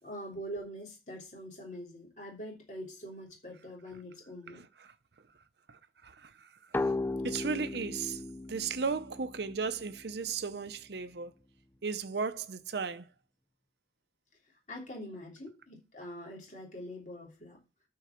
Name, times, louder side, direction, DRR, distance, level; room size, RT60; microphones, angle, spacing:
voice 1, 0.0-4.6 14.7-17.6, equal, 40° left, 3.1 m, -44 dB
sound 1, 6.7-10.2, left 2 dB, 10° left, 0.3 m, -36 dB
voice 2, 7.2-8.2 8.5-11.3 11.8-13.1, right 5 dB, 70° right, 0.6 m, -35 dB
9.3 x 4.7 x 5.8 m
head